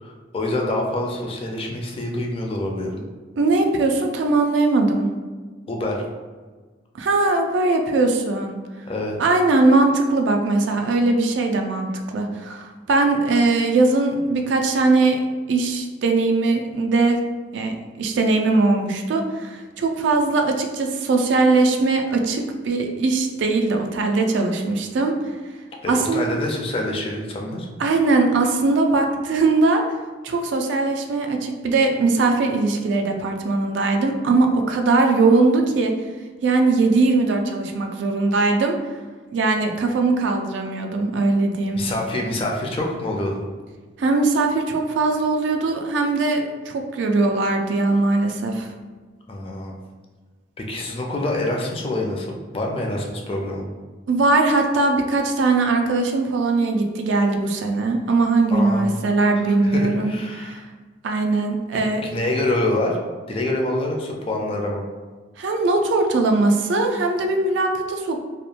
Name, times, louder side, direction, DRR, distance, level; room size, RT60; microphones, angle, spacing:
voice 1, 0.0-3.0 5.7-6.1 8.9-9.2 25.8-27.7 41.8-43.5 49.3-49.8 50.6-52.3 52.5-53.7 58.5-58.9 59.4-60.6 62.0-63.0 63.3-64.8, left 1 dB, 30° left, 0 dB, 0.4 m, -26 dB
voice 2, 3.4-5.1 7.0-8.6 9.2-17.2 17.5-25.1 25.9-26.3 27.8-29.8 30.2-35.9 36.4-38.8 39.3-41.8 44.0-48.7 54.1-60.7 61.0-62.0 65.4-68.2, right 3 dB, 75° right, 4 dB, 0.3 m, -20 dB
2.8 x 2.1 x 2.4 m, 1.4 s
head